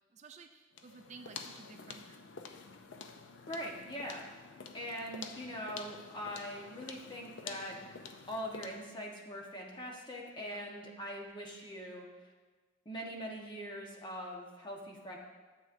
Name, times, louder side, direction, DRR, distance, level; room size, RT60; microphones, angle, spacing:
voice 1, 0.1-2.2 10.4-10.7, right 4 dB, 40° right, 7 dB, 0.4 m, -54 dB
sound 1, 0.7-8.9, left 5 dB, 75° left, 0.6 m, -49 dB
voice 2, 3.5-4.2 4.7-7.8 8.3-12.1 12.8-15.2, equal, 25° left, -1 dB, 1.3 m, -42 dB
12.5 x 7.7 x 2.6 m, 1.3 s
head